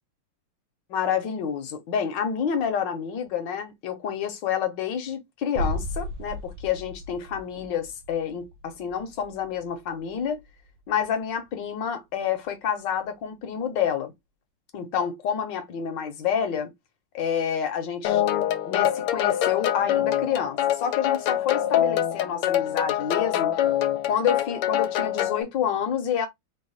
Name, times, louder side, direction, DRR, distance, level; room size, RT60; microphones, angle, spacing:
voice 1, 0.9-10.4 10.9-14.1 14.7-16.7 17.1-18.2 18.7-23.5 24.1-26.3, left 8 dB, 65° left, 1.3 m, -28 dB
sound 1, 5.5-11.3 11.5-11.6, equal, 75° right, 1.0 m, -36 dB
sound 2, 18.0-25.4, left 11 dB, 85° left, 1.5 m, -25 dB
4.0 x 2.1 x 3.9 m
omnidirectional pair, 2.4 m